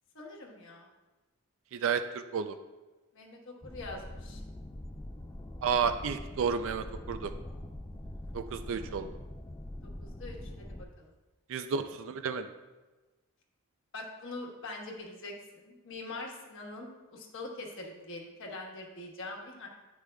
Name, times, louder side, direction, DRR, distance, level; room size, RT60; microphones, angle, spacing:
voice 1, 0.1-0.9 3.1-4.4 9.8-10.7 11.0-11.1 13.9-19.7, left 2 dB, 60° left, 0 dB, 1.2 m, -43 dB
voice 2, 1.7-2.6 5.6-7.3 8.3-9.1 11.5-12.5, right 6 dB, 60° right, 10 dB, 0.4 m, -31 dB
sound 1, 3.6-10.8, left 1 dB, 15° left, 0.3 m, -43 dB
10.5 x 4.9 x 2.2 m, 1.2 s
head